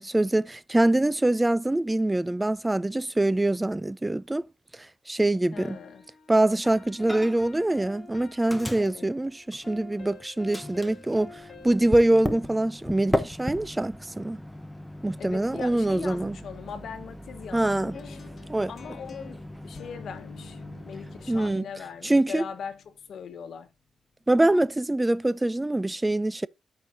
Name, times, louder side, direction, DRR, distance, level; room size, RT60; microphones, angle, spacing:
voice 1, 0.0-4.4 5.1-5.8 6.3-14.4 15.0-16.4 17.5-18.0 18.5-18.7 21.3-21.7 22.0-22.5 24.3-26.5, right 1 dB, 10° right, 0.3 m, -24 dB
voice 2, 5.5-6.0 8.8-9.1 15.2-18.2 18.7-20.6 20.9-22.8 23.1-23.7, left 7 dB, 75° left, 1.1 m, -40 dB
sound 1, 5.5-12.9, left 3 dB, 30° left, 2.1 m, -48 dB
Microwave oven, 7.1-7.6 7.8-10.1 10.5-21.5, left 1 dB, 5° left, 0.8 m, -37 dB
sound 2, 17.9-23.9, left 5 dB, 50° left, 1.5 m, -49 dB
13.0 x 4.9 x 2.6 m
wide cardioid pair, 125°, 0 cm